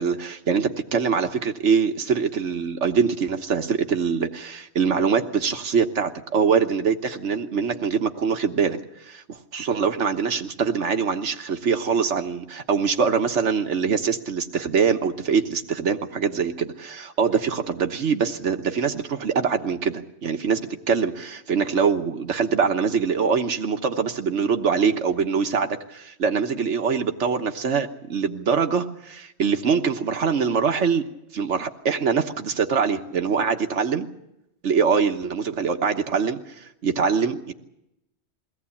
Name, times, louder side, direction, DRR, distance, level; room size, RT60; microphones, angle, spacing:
voice 1, 0.0-34.1 34.6-37.5, right 6 dB, 90° right, 6 dB, 1.5 m, -23 dB
23.0 x 17.5 x 8.5 m, 0.84 s
omnidirectional pair, 1.2 m